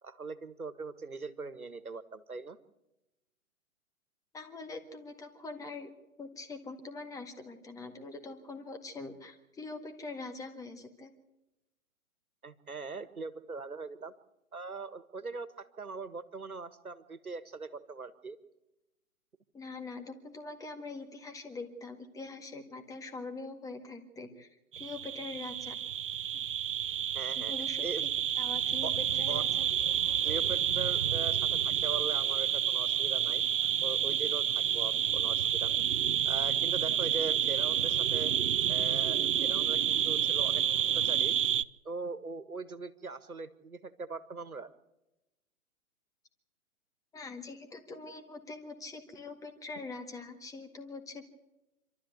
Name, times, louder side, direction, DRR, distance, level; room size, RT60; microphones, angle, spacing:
voice 1, 0.0-2.6 12.4-14.1 14.5-18.4 27.1-27.5 27.8-28.1 28.8-28.9 29.3-29.4 30.2-33.4 33.8-35.8 36.2-38.3 38.7-40.6 41.0-41.3 41.8-44.7, right 4 dB, 80° right, 13 dB, 1.7 m, -41 dB
voice 2, 4.3-5.9 6.2-11.1 19.5-24.5 24.8-25.8 27.4-28.1 28.4-29.7 47.1-51.3, left 3 dB, 10° left, 5 dB, 1.8 m, -43 dB
sound 1, 24.7-41.6, right 9 dB, 60° right, 0.6 m, -29 dB
27.0 x 13.0 x 8.1 m, 0.97 s
figure-of-eight pair, 120°, 42 cm